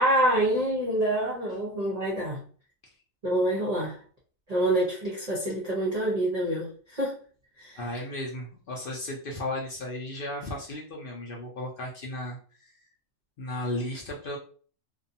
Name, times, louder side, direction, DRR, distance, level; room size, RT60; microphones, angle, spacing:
voice 1, 0.0-2.4 3.2-4.0 4.5-7.2 7.6-7.8, right 1 dB, 40° right, 0.6 m, -26 dB
voice 2, 7.8-12.7 13.4-14.4, left 1 dB, 55° left, 0.7 m, -35 dB
2.5 x 2.3 x 2.7 m
omnidirectional pair, 1.4 m